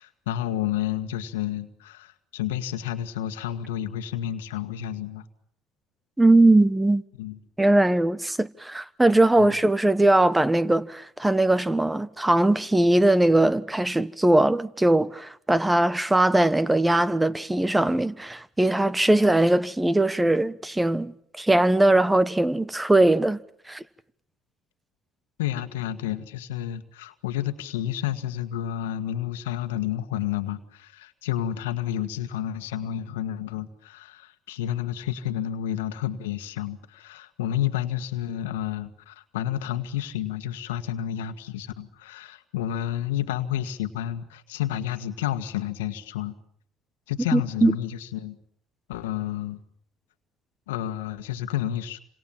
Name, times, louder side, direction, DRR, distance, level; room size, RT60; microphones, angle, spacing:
voice 1, 0.0-5.2 7.2-7.4 9.4-9.5 25.4-46.3 47.1-48.4 48.9-49.6 50.7-52.0, left 11 dB, 90° left, 1.7 m, -30 dB
voice 2, 6.2-7.0 7.6-23.4 23.7-23.8 47.3-47.7, right 2 dB, 10° right, 1.2 m, -20 dB
28.5 x 26.5 x 7.5 m
hypercardioid pair, 70°, 0 cm